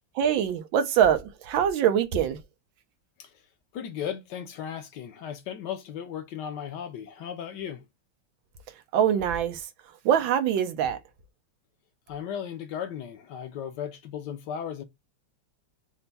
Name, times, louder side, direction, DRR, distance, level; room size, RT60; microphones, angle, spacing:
voice 1, 0.1-2.4 8.9-9.7 10.0-11.0, right 9 dB, 90° right, 1.5 m, -23 dB
voice 2, 3.7-7.8 12.1-14.8, left 8 dB, 70° left, 1.3 m, -36 dB
5.7 x 2.2 x 4.0 m
omnidirectional pair, 2.1 m